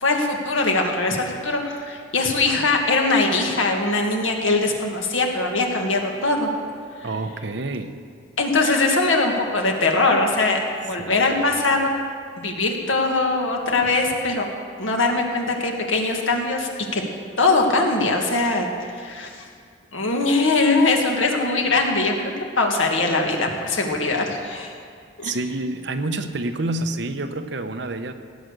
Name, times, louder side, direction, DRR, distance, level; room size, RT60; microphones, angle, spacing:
voice 1, 0.0-6.5 8.4-12.0 12.4-14.5 14.8-17.0 17.4-19.4 19.9-22.3 22.6-24.7 25.2-25.3, left 3 dB, 90° left, 2 dB, 2.0 m, -21 dB
voice 2, 7.0-7.9 11.0-11.5 25.2-28.1, right 2 dB, 65° right, 8 dB, 0.9 m, -28 dB
17.0 x 9.1 x 6.7 m, 2.1 s
head